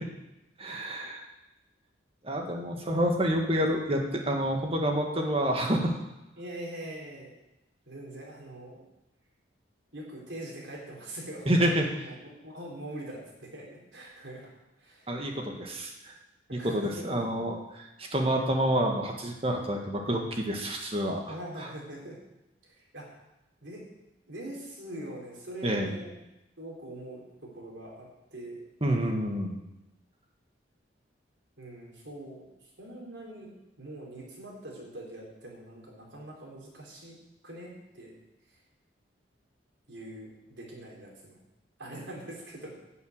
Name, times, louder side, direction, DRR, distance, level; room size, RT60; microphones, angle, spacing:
voice 1, 0.6-1.2 2.2-5.9 11.4-11.9 15.1-16.1 16.5-21.2 21.6-21.7 25.6-25.9 28.8-29.6, equal, 30° right, 2 dB, 1.8 m, -28 dB
voice 2, 6.4-7.4 7.9-8.8 9.9-11.6 12.0-14.5 14.8-15.1 16.5-17.2 21.3-22.2 22.6-23.1 23.6-23.8 24.3-26.1 26.6-28.6 31.6-33.5 33.8-37.2 37.4-38.1 38.5-38.6 39.9-41.4 41.8-42.7, right 1 dB, 75° right, -2 dB, 3.9 m, -43 dB
11.5 x 7.0 x 8.1 m, 0.94 s
head